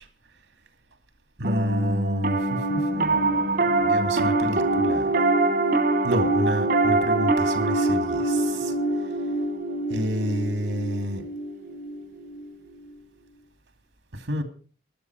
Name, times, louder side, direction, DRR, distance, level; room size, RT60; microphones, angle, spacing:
Piano, 1.4-12.9, right 2 dB, 50° right, 1.4 m, -24 dB
voice 1, 1.4-5.1 6.0-8.7 9.9-11.2 14.3-14.4, equal, 70° right, 2.4 m, -29 dB
16.5 x 11.5 x 4.7 m
head